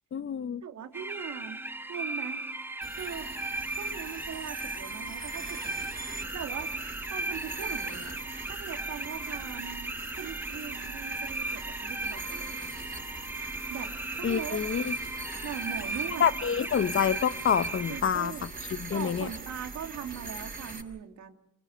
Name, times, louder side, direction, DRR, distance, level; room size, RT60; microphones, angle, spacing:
voice 1, 0.1-0.6 14.2-14.9 16.2-18.3 18.7-19.3, left 8 dB, 45° left, 0.9 m, -27 dB
voice 2, 0.6-1.6 1.9-2.4 2.9-3.3 3.8-5.8 6.3-6.7 7.1-8.2 8.5-12.6 13.7-14.6 15.4-16.3 17.9-18.5 18.9-21.3, right 8 dB, 70° right, 3.0 m, -40 dB
sound 1, 0.9-18.0, right 2 dB, 5° right, 1.1 m, -37 dB
sound 2, 2.8-20.8, right 3 dB, 30° right, 5.4 m, -42 dB
27.0 x 20.5 x 7.9 m
cardioid pair, 90°, 30 cm